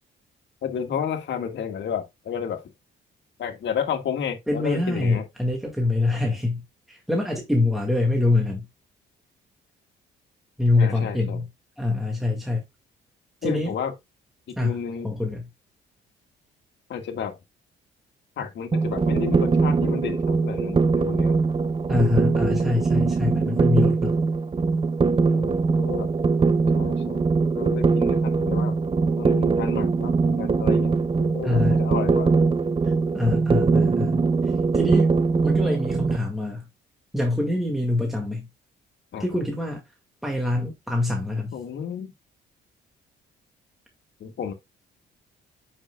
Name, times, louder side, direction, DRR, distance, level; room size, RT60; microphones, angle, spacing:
voice 1, 0.6-2.6 3.4-5.3 10.8-11.4 13.4-13.9 14.5-15.1 16.9-17.4 18.4-21.4 25.3-26.1 26.7-27.3 27.6-28.8 29.2-32.3 39.1-39.4 41.5-42.1 44.2-44.5, left 7 dB, 65° left, 1.9 m, -31 dB
voice 2, 4.5-6.6 6.9-8.7 10.6-11.5 11.8-12.6 13.4-13.7 14.6-14.8 15.0-15.5 21.9-24.1 31.4-31.8 32.9-34.2 34.7-35.1 35.4-36.6 37.1-38.5 39.2-39.8 40.2-41.5, left 2 dB, ahead, 2.0 m, -24 dB
sound 1, 18.7-36.2, right 4 dB, 25° right, 0.6 m, -22 dB
9.0 x 5.9 x 2.3 m
cardioid pair, 90°, 20 cm